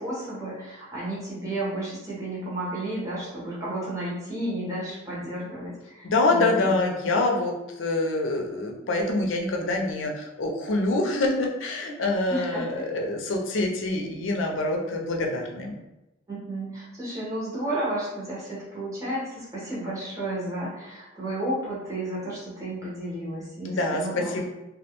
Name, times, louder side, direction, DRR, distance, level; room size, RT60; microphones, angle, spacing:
voice 1, 0.0-6.7 12.3-12.6 16.3-24.4, right 1 dB, 15° right, -8 dB, 0.8 m, -32 dB
voice 2, 6.0-15.8 23.6-24.4, left 2 dB, 90° left, 1 dB, 0.5 m, -26 dB
2.3 x 2.1 x 2.8 m, 0.96 s
head